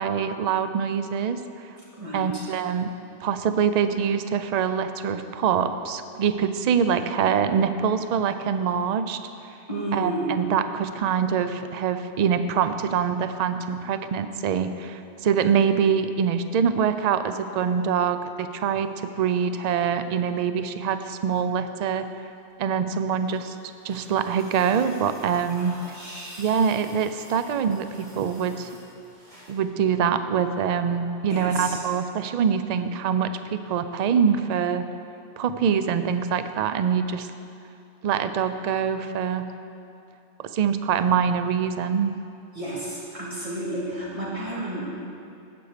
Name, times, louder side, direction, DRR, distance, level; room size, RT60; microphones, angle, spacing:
voice 1, 0.0-1.4 2.1-2.9 3.2-9.2 9.9-10.1 10.4-18.9 19.2-22.1 22.6-23.6 23.8-25.8 26.4-28.7 29.5-34.8 35.4-37.3 38.0-39.5 40.4-42.1, right 7 dB, 55° right, 10 dB, 0.4 m, -24 dB
voice 2, 1.9-2.4 7.0-7.1 9.7-10.3 25.5-26.4 31.3-31.8 42.5-44.9, right 1 dB, 30° right, -7 dB, 2.4 m, -32 dB
sound 1, 22.9-29.6 30.9-31.0, equal, 80° right, 3.0 m, -50 dB
15.0 x 6.1 x 5.0 m, 2.7 s
omnidirectional pair, 1.2 m